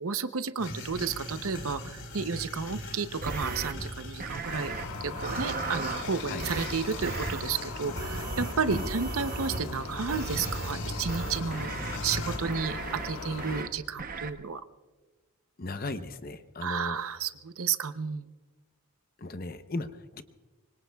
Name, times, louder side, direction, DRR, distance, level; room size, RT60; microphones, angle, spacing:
voice 1, 0.0-14.6 16.6-18.3, right 5 dB, 75° right, 11 dB, 0.7 m, -32 dB
sound 1, 0.6-12.4, left 1 dB, 65° left, 4.2 m, -40 dB
sound 2, 3.2-3.7 4.2-4.8 5.2-6.1 6.4-6.7 7.0-7.4 8.0-9.7 10.1-10.7 11.1-12.0 12.5-13.1 13.4-13.7 14.0-14.3, right 4 dB, 40° right, 0.8 m, -36 dB
sound 3, 4.4-13.6, left 3 dB, 90° left, 1.5 m, -39 dB
voice 2, 15.6-17.0 19.2-20.2, left 2 dB, 40° left, 10 dB, 0.7 m, -36 dB
24.5 x 24.5 x 2.3 m, 1.3 s
head